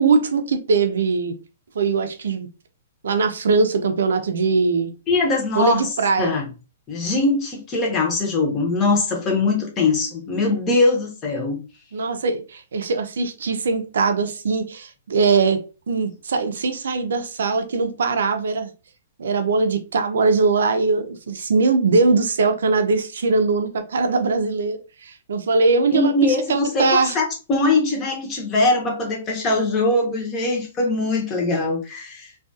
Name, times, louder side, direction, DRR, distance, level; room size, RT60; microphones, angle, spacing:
voice 1, 0.0-1.4 1.7-2.5 3.0-4.9 5.5-6.4 11.9-15.6 15.9-18.7 19.2-27.2, right 4 dB, 85° right, 7 dB, 0.5 m, -21 dB
voice 2, 5.1-5.8 6.2-6.4 6.9-11.6 25.9-32.3, left 2 dB, 20° left, 0 dB, 0.8 m, -21 dB
2.3 x 2.3 x 2.6 m, 0.32 s
hypercardioid pair, 155°, 0 cm